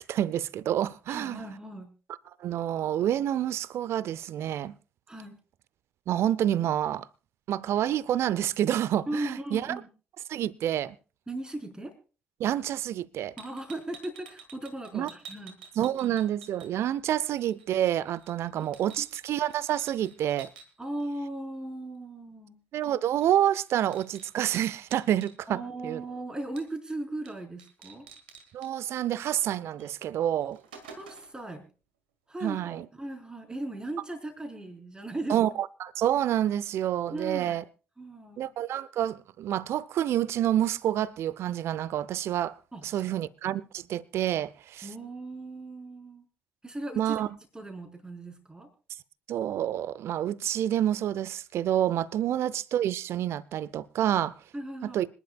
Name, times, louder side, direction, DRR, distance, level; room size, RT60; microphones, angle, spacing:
voice 1, 0.0-1.4 2.4-4.7 6.1-7.1 7.5-9.8 10.3-11.0 12.4-13.3 14.9-15.1 15.8-20.5 22.7-26.0 28.5-30.6 32.4-32.8 35.3-37.6 38.4-42.5 42.8-44.9 47.0-47.3 49.3-54.3 54.9-55.1, right 11 dB, 55° right, 0.6 m, -28 dB
voice 2, 1.1-1.9 5.1-5.4 9.1-9.9 11.3-12.0 13.4-15.6 19.0-19.1 20.8-22.6 25.5-28.1 31.0-31.7 32.3-35.4 37.1-37.6 38.0-38.5 42.7-43.1 44.8-46.3 46.6-47.2 47.5-48.7 54.5-55.0, right 2 dB, 15° right, 4.4 m, -37 dB
sound 1, 13.4-17.1 17.4-20.7 22.8-23.0 23.2-25.4 26.6-26.9 27.3-27.4 27.6-28.7 29.8-29.9 30.3-31.4, right 6 dB, 80° right, 1.7 m, -50 dB
26.0 x 11.0 x 2.3 m
figure-of-eight pair, 45°, 5 cm